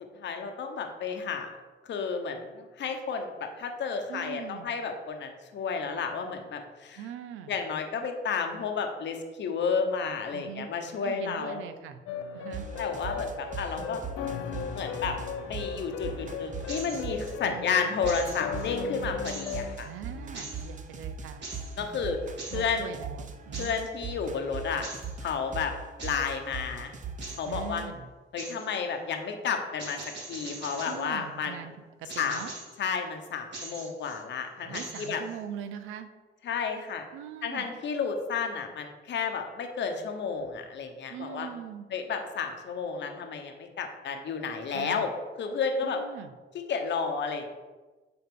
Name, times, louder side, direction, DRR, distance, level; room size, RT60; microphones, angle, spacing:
voice 1, 0.2-1.5 1.9-7.0 7.5-11.6 12.8-14.0 14.7-15.2 15.5-19.9 21.8-22.2 22.5-22.9 23.6-24.9 25.2-25.7 26.0-26.9 27.4-27.8 28.3-30.0 30.3-31.6 32.2-32.4 32.8-35.2 36.4-37.0 37.4-41.5 41.9-46.0 46.5-47.5, left 5 dB, 65° left, 4 dB, 1.0 m, -32 dB
voice 2, 4.1-4.7 7.0-7.5 10.3-10.7 11.0-12.0 12.3-12.7 17.4-18.0 19.8-21.4 22.5-23.7 27.5-28.1 30.8-31.7 32.0-32.5 34.6-36.1 37.1-37.7 41.1-41.9 44.7-45.1 45.8-46.3, right 9 dB, 90° right, 10 dB, 0.6 m, -41 dB
sound 1, 12.1-19.8, left 7 dB, 90° left, 0.5 m, -37 dB
sound 2, 12.5-17.5 18.0-27.9, right 5 dB, 40° right, 0.7 m, -40 dB
sound 3, 16.7-17.3 18.1-18.7 19.2-19.9 20.3-20.7 21.4-21.8 22.4-22.7 23.5-23.9 24.8-25.1 26.0-26.3 27.2-27.5 28.4-28.7 29.8-31.1 32.1-32.8 33.5-34.2 34.7-35.4, right 2 dB, 60° right, 2.0 m, -42 dB
9.3 x 3.9 x 3.7 m, 1.3 s
cardioid pair, 90°, 20 cm